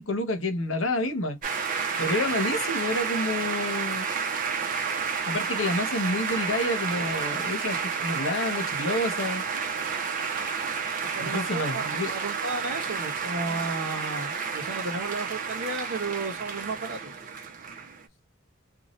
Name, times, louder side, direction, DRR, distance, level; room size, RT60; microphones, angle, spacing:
voice 1, 0.0-1.4 2.0-4.1 5.3-9.4 11.2-12.1, left 1 dB, 80° left, 1.0 m, -29 dB
sound 1, 1.4-18.1, right 6 dB, 40° right, 0.6 m, -30 dB
voice 2, 11.1-17.1, right 3 dB, 80° right, 0.9 m, -33 dB
2.7 x 2.4 x 3.0 m
head